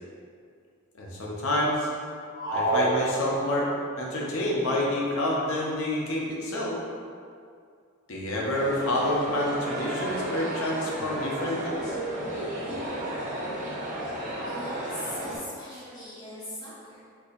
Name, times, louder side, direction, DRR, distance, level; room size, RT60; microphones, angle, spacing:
voice 1, 1.0-1.9 2.5-3.7 4.0-6.8 8.1-12.0, left 1 dB, 65° left, -4 dB, 0.7 m, -28 dB
sound 1, 2.3-3.8, right 1 dB, 85° right, 1.0 m, -27 dB
sound 2, 8.5-15.4, right 1 dB, 35° right, 0.6 m, -33 dB
voice 2, 13.9-17.0, left 1 dB, 20° left, -8 dB, 0.5 m, -41 dB
4.0 x 2.7 x 2.6 m, 2.3 s
head